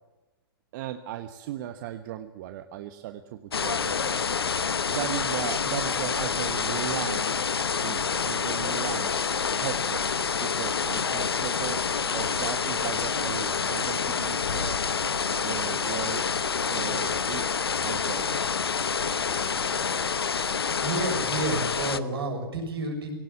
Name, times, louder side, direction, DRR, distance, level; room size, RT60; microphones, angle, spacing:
voice 1, 0.7-4.0 4.4-4.5 4.9-7.4 7.7-9.1 9.6-11.8 12.1-14.9 15.4-16.3 16.6-18.4, right 12 dB, 50° right, 8 dB, 1.2 m, -37 dB
sound 1, 3.5-22.0, left 6 dB, 85° left, 1.0 m, -27 dB
voice 2, 20.7-23.1, right 2 dB, 80° right, 2 dB, 6.9 m, -30 dB
18.5 x 18.0 x 8.6 m, 1.1 s
hypercardioid pair, 115°, 12 cm